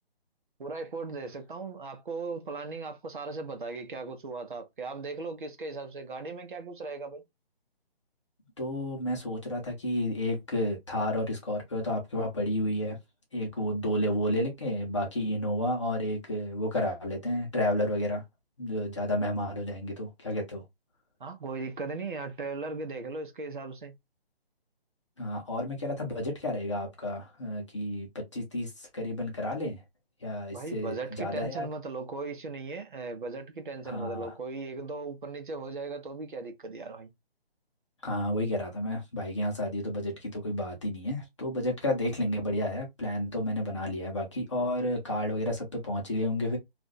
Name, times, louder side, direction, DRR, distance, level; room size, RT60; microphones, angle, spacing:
voice 1, 0.6-7.2 21.2-23.9 30.5-37.1, right 3 dB, 55° right, 0.8 m, -38 dB
voice 2, 8.6-13.0 13.3-18.2 18.6-20.6 25.2-29.8 30.2-31.7 33.9-34.3 38.0-46.6, left 1 dB, 30° left, 0.8 m, -31 dB
2.5 x 2.2 x 3.8 m
hypercardioid pair, 175°, 30 cm